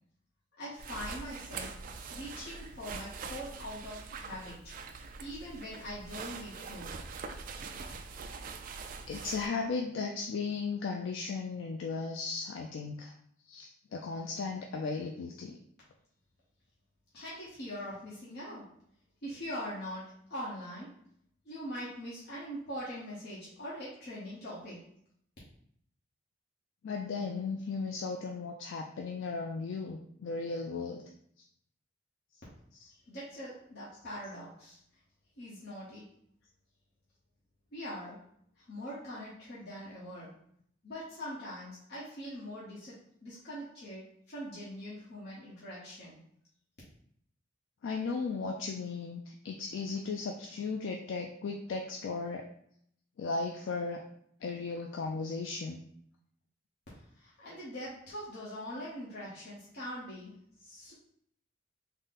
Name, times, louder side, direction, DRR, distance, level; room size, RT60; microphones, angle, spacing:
voice 1, 0.6-4.6 5.0-6.9 17.1-18.7 19.2-20.9 21.4-24.8 32.9-34.8 35.4-36.1 37.7-38.2 38.6-40.3 40.8-46.2 56.9-60.9, equal, 55° left, -8 dB, 0.9 m, -43 dB
sound 1, 0.8-9.5, right 4 dB, 45° right, 0.3 m, -43 dB
voice 2, 9.1-13.1 13.5-15.6 26.8-31.0 47.8-52.5 53.2-54.0 54.4-55.8, left 4 dB, 75° left, 2 dB, 0.3 m, -36 dB
3.7 x 2.1 x 4.0 m, 0.69 s
head